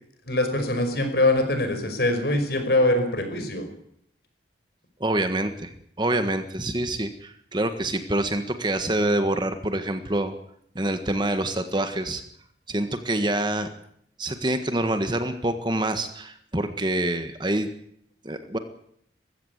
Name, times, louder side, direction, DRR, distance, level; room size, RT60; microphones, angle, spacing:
voice 1, 0.3-3.7, left 1 dB, 55° left, 6 dB, 5.4 m, -23 dB
voice 2, 5.0-5.7 6.0-10.3 10.7-12.2 12.7-13.7 14.2-17.7 18.2-18.6, right 1 dB, 25° right, 8 dB, 1.6 m, -26 dB
21.0 x 15.5 x 9.4 m, 0.69 s
head